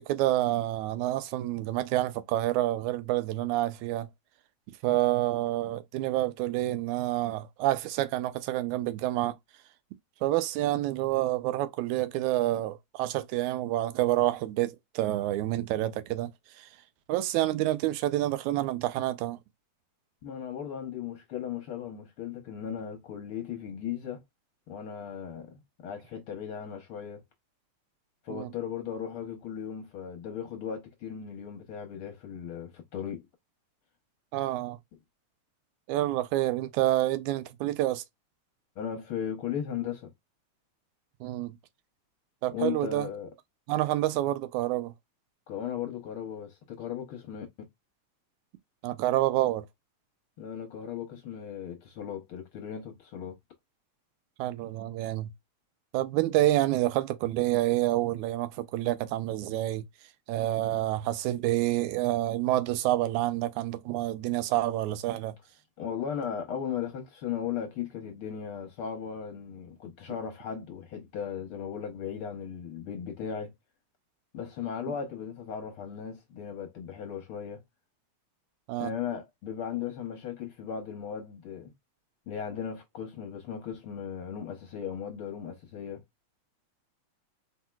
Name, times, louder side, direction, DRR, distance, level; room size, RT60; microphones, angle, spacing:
voice 1, 0.0-4.1 4.8-9.4 10.2-16.3 16.6-16.7 17.1-19.4 28.3-28.5 34.3-34.8 35.9-38.0 41.2-41.6 42.4-43.1 43.7-44.9 48.8-49.7 54.4-55.3 55.9-59.8 60.3-65.4 78.7-78.9, right 15 dB, 85° right, 2.0 m, -28 dB
voice 2, 20.2-24.2 24.7-27.2 28.2-33.3 38.8-40.1 42.5-43.3 45.5-47.5 50.4-53.4 65.8-73.5 74.3-77.6 78.8-81.7 82.3-86.0, left 8 dB, 65° left, 1.4 m, -37 dB
4.4 x 4.1 x 2.3 m
omnidirectional pair, 3.3 m